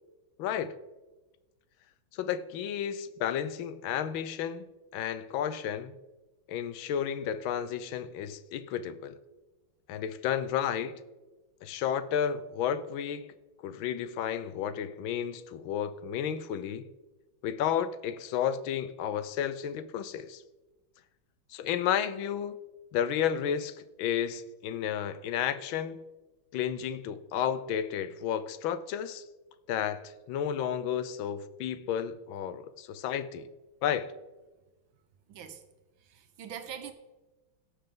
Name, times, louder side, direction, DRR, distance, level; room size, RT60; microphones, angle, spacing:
voice 1, 0.4-0.8 2.1-4.7 4.9-5.9 6.5-9.1 9.9-11.0 11.6-13.3 13.6-16.9 17.4-20.4 21.5-22.6 22.9-26.0 26.5-29.2 29.7-33.5 33.8-34.1, left 9 dB, 85° left, 1.5 m, -32 dB
voice 2, 35.3-35.6 36.1-36.9, right 8 dB, 80° right, 1.7 m, -42 dB
17.5 x 6.5 x 3.7 m
omnidirectional pair, 2.1 m